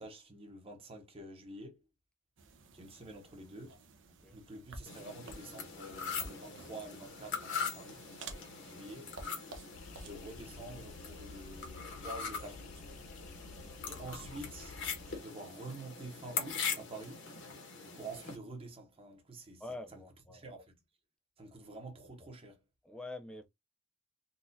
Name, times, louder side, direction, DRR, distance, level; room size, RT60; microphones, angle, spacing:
voice 1, 0.0-1.8 2.7-3.8 4.3-8.1 8.6-9.1 10.0-12.8 13.8-14.8 15.1-17.2 17.9-19.6 19.9-20.0 20.3-20.6 21.4-22.6, right 2 dB, 25° right, 0.9 m, -48 dB
sound 1, 2.4-11.8, right 3 dB, 55° right, 0.7 m, -53 dB
sound 2, 4.9-18.4, left 6 dB, 55° left, 1.1 m, -42 dB
sound 3, 9.7-15.2, left 4 dB, 85° left, 0.4 m, -52 dB
voice 2, 13.7-14.0 19.6-20.4 22.8-23.5, left 2 dB, 5° left, 0.4 m, -46 dB
3.9 x 2.4 x 2.6 m
head